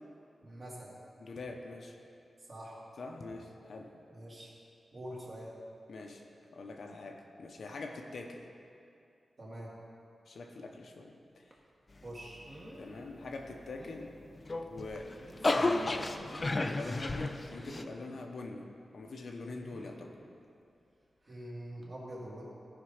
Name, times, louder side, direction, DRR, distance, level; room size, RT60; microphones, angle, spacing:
voice 1, 0.4-0.9 2.5-2.8 4.1-4.5 4.9-5.5 9.4-9.7 12.0-12.4 21.3-22.4, right 1 dB, 35° right, -5 dB, 2.2 m, -44 dB
voice 2, 1.2-2.0 3.0-3.9 5.9-6.2 6.5-8.5 10.3-11.4 12.8-14.1 14.7-15.1 15.4-18.7 18.9-20.1, left 3 dB, 60° left, 2 dB, 0.8 m, -44 dB
sound 1, 11.5-11.7 12.5-12.9 13.3-13.4 13.8-14.0 14.9-15.9 16.3-17.0 17.6-18.1 19.7-20.1 21.2-21.4 21.8-21.9, right 1 dB, 20° right, 1.2 m, -51 dB
sound 2, 14.4-17.8, left 2 dB, 30° left, 0.4 m, -32 dB
15.0 x 5.2 x 5.0 m, 2.5 s
wide cardioid pair, 170°, 0 cm